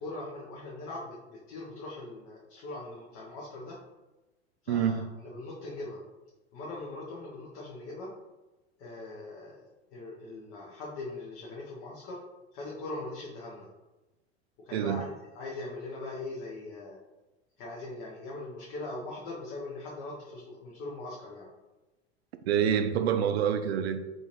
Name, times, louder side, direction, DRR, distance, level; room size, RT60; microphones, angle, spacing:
voice 1, 0.0-3.8 4.6-6.0 6.5-8.1 8.8-12.2 12.5-13.7 14.6-15.1 15.3-17.0 17.6-21.5, left 2 dB, 40° left, -3 dB, 0.8 m, -41 dB
voice 2, 4.7-5.0 14.7-15.0 22.5-24.0, right 8 dB, 65° right, 8 dB, 0.5 m, -26 dB
3.7 x 2.5 x 2.9 m, 1.1 s
figure-of-eight pair, 85°, 34 cm